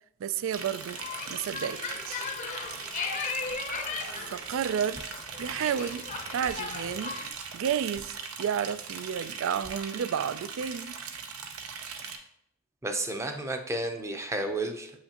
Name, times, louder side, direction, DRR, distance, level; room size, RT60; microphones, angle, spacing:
voice 1, 0.2-1.0 1.3-2.3 4.3-5.0 5.4-6.0 6.3-11.0, right 8 dB, 65° right, 0.3 m, -31 dB
Liquid, 0.5-12.2, right 6 dB, 90° right, 0.8 m, -40 dB
sound 1, 0.9-7.3, left 5 dB, 35° left, 0.7 m, -37 dB
sound 2, 3.5-3.7 4.1-4.2 4.9-5.2 5.7-5.8 6.4-6.7 7.3-7.4 7.9-8.2 8.5-8.6 9.0-9.1 9.6-10.2, right 1 dB, 40° right, 0.9 m, -51 dB
voice 2, 12.8-14.9, right 2 dB, 15° right, 0.6 m, -32 dB
7.8 x 5.7 x 2.9 m
head